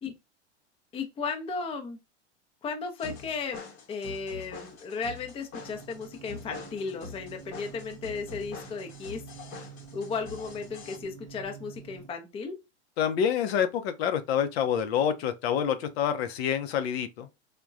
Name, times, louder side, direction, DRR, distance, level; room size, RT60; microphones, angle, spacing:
voice 1, 0.9-2.0 2.6-3.6 3.9-9.2 9.9-12.6, left 4 dB, 15° left, 0.5 m, -35 dB
sound 1, 3.0-11.0, left 5 dB, 35° left, 0.9 m, -45 dB
sound 2, 5.6-12.1, right 7 dB, 50° right, 0.7 m, -48 dB
voice 2, 13.0-17.3, left 8 dB, 60° left, 0.6 m, -27 dB
3.5 x 2.2 x 2.5 m
hypercardioid pair, 105°, 35 cm